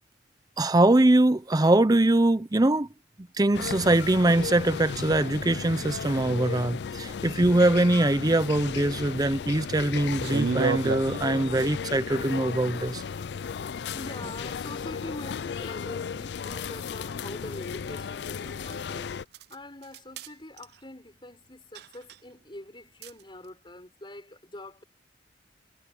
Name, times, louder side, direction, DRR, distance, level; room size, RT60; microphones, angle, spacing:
voice 1, 0.6-2.9 3.4-13.0, right 1 dB, 20° right, 0.6 m, -22 dB
sound 1, 3.5-19.2, left 6 dB, 65° left, 0.4 m, -35 dB
sound 2, 10.2-11.7 15.6-15.7 16.5-16.6 18.6-18.8 19.3-19.5 19.8-20.3 20.6-20.8 21.7-22.2 23.0-23.2, right 5 dB, 60° right, 0.4 m, -31 dB
voice 2, 13.9-24.8, left 1 dB, 25° left, 6.0 m, -44 dB
head